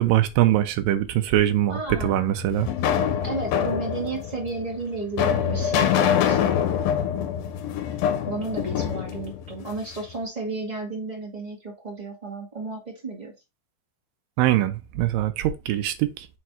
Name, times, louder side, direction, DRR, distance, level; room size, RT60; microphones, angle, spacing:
voice 1, 0.0-2.7 14.4-16.3, right 13 dB, 80° right, 2.4 m, -22 dB
voice 2, 1.7-2.3 3.2-6.6 8.3-13.3, right 3 dB, 15° right, 1.6 m, -33 dB
sound 1, 2.0-10.1, left 8 dB, 75° left, 2.5 m, -25 dB
6.3 x 3.5 x 4.3 m
omnidirectional pair, 4.2 m